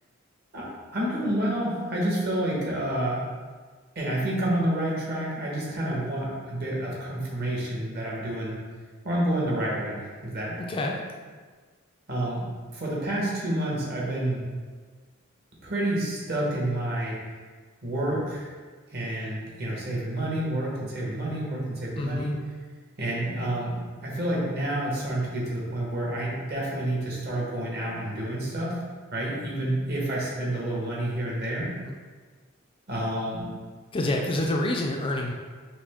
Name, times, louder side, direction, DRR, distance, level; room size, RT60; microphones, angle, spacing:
voice 1, 0.9-3.2 3.9-8.6 9.0-10.5 12.1-12.4 12.7-14.4 15.6-17.2 17.8-18.5 18.9-22.3 23.0-23.8 24.0-28.7 29.1-31.7 32.9-33.5, right 1 dB, 50° right, -4 dB, 1.2 m, -29 dB
voice 2, 10.6-11.0 22.0-22.3 31.7-31.9 33.9-35.3, left 1 dB, 25° left, 0 dB, 0.3 m, -28 dB
5.9 x 2.1 x 3.4 m, 1.5 s
head